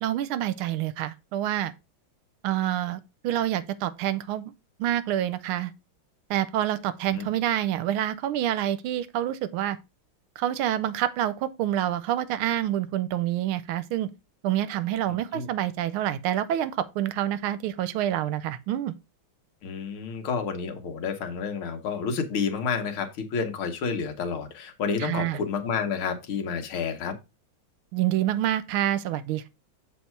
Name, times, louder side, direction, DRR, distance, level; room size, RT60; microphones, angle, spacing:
voice 1, 0.0-1.7 2.4-4.5 4.8-5.7 6.3-9.8 10.4-14.1 14.4-18.9 25.0-25.4 27.9-29.5, right 12 dB, 80° right, 1.5 m, -27 dB
voice 2, 19.6-27.1, left 5 dB, 75° left, 2.1 m, -30 dB
7.4 x 4.2 x 4.5 m
omnidirectional pair, 2.3 m